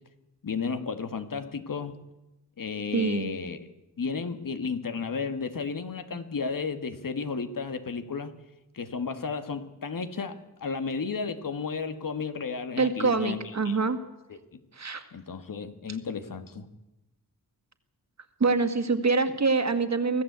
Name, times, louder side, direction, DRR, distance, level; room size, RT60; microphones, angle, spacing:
voice 1, 0.4-1.9 2.6-3.6 4.0-8.3 8.7-13.8 14.3-14.4 15.1-16.7, left 5 dB, 60° left, 10 dB, 1.9 m, -33 dB
voice 2, 2.9-3.3 12.8-14.0 14.7-15.1 18.4-20.2, right 4 dB, 45° right, 9 dB, 2.0 m, -25 dB
25.0 x 16.5 x 8.2 m, 0.97 s
wide cardioid pair, 100°, 37 cm